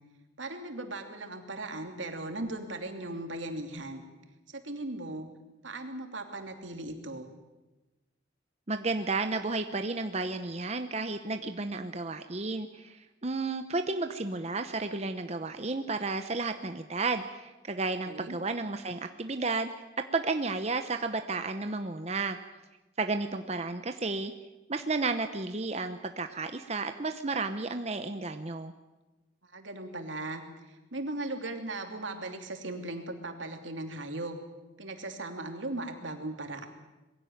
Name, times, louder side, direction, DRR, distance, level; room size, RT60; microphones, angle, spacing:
voice 1, 0.4-4.1 4.5-5.3 5.6-7.3 18.0-18.4 29.4-34.4 34.8-36.7, right 2 dB, 85° right, 5 dB, 2.9 m, -38 dB
voice 2, 8.7-19.7 20.1-22.4 23.0-24.3 24.7-28.7, right 3 dB, 35° right, 7 dB, 0.9 m, -32 dB
21.5 x 16.5 x 9.4 m, 1.1 s
head